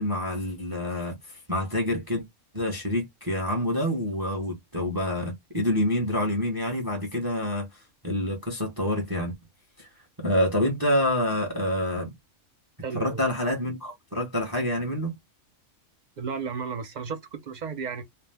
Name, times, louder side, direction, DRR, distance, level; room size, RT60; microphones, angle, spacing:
voice 1, 0.0-2.2 2.5-7.7 8.0-9.3 9.8-9.9 10.2-12.1 12.9-15.2, left 1 dB, 20° right, 0.7 m, -27 dB
voice 2, 12.8-13.2 16.2-18.0, right 5 dB, 65° right, 0.4 m, -33 dB
2.6 x 2.0 x 3.3 m
omnidirectional pair, 1.3 m